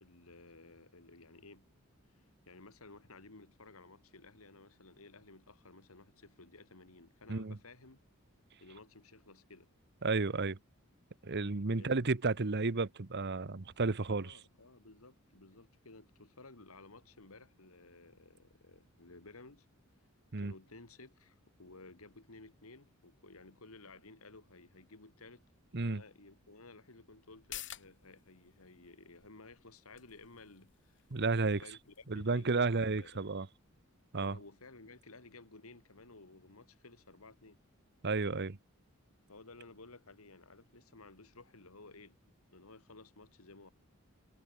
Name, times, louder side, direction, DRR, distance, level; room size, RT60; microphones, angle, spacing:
voice 1, 0.0-1.6 2.2-8.0 8.6-9.7 11.7-12.1 14.1-19.7 20.4-25.4 25.8-31.1 31.4-33.2 34.2-37.6 39.3-42.2 42.5-43.7, left 3 dB, 75° left, 2.6 m, -56 dB
voice 2, 10.0-10.6 11.2-14.4 20.3-20.5 25.7-26.0 31.1-31.6 32.1-33.5 34.1-34.4 38.0-38.6, right 3 dB, 50° right, 1.0 m, -32 dB
sound 1, 27.3-34.5 34.8-34.9, left 13 dB, 60° left, 2.9 m, -54 dB
head